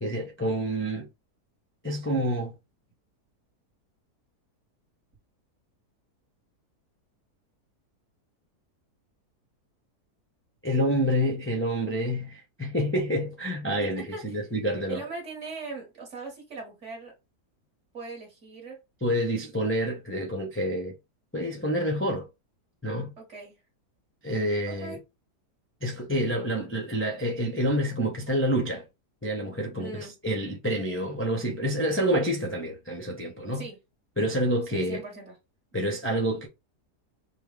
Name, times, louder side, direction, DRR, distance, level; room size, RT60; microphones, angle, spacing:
voice 1, 0.0-1.1 1.8-2.5 10.6-15.0 19.0-20.9 21.3-22.3 22.8-23.1 24.2-25.0 25.8-28.8 29.2-30.0 30.2-33.6 34.2-35.0 35.7-36.5, equal, 15° left, 0.4 m, -28 dB
voice 2, 13.8-14.3 14.9-17.1 17.9-18.8 23.2-23.6 24.7-25.0 29.8-30.1 33.5-33.8 34.7-35.4, right 3 dB, 45° right, 1.8 m, -40 dB
5.5 x 2.3 x 3.3 m
omnidirectional pair, 1.7 m